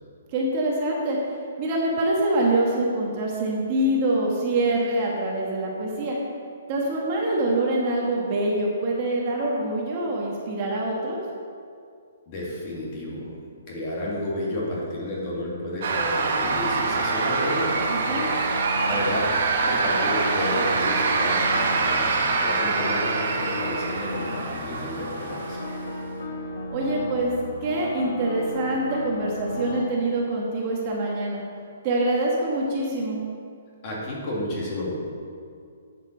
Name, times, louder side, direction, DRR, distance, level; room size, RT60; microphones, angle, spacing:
voice 1, 0.3-6.2 6.7-11.2 17.9-18.3 26.7-27.3 27.6-31.4 31.8-33.2, right 1 dB, 25° right, -2 dB, 1.3 m, -25 dB
voice 2, 12.3-13.3 13.7-19.3 19.6-25.7 33.8-35.0, left 1 dB, 25° left, -4 dB, 2.1 m, -31 dB
sound 1, 15.8-25.9, right 4 dB, 50° right, 1.1 m, -25 dB
sound 2, 16.4-29.8, left 1 dB, 50° left, 1.3 m, -35 dB
11.0 x 7.4 x 4.4 m, 2.3 s
hypercardioid pair, 175°, 0 cm